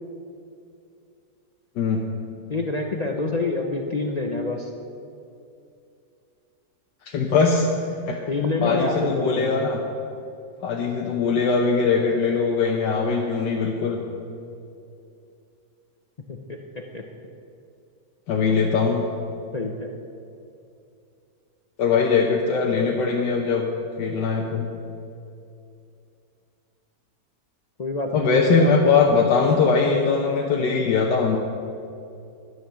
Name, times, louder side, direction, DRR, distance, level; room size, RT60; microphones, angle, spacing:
voice 1, 2.5-4.7 8.3-9.5 16.3-17.0 19.5-19.9 22.8-23.0 27.8-28.7, left 3 dB, 65° left, 2 dB, 0.4 m, -27 dB
voice 2, 7.1-8.2 8.6-9.8 10.6-14.0 18.3-19.0 21.8-23.7 24.0-24.7 28.1-31.4, left 5 dB, 85° left, 0 dB, 1.6 m, -21 dB
11.0 x 9.4 x 7.0 m, 2.6 s
omnidirectional pair, 1.8 m